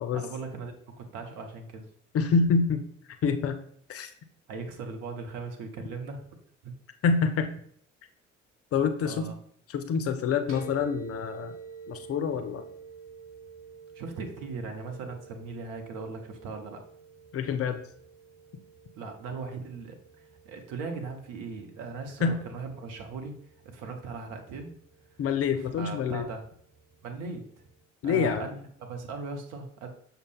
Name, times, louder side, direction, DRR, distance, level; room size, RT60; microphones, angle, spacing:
voice 1, 0.1-1.9 4.5-6.3 6.6-6.7 9.0-9.3 13.9-16.8 18.9-19.9 20.4-23.3 23.7-24.7 25.7-26.4 27.0-27.4 28.0-29.9, right 4 dB, 60° right, 5 dB, 0.8 m, -38 dB
voice 2, 2.1-2.8 3.2-3.6 3.9-4.1 7.0-7.5 8.7-9.3 9.7-11.5 11.9-12.6 17.3-17.8 22.2-22.4 25.2-26.2 28.0-28.5, left 5 dB, 40° left, 8 dB, 0.5 m, -26 dB
sound 1, 10.5-27.8, right 5 dB, 35° right, 1.7 m, -50 dB
6.5 x 2.2 x 3.3 m, 0.63 s
figure-of-eight pair, 50°, 37 cm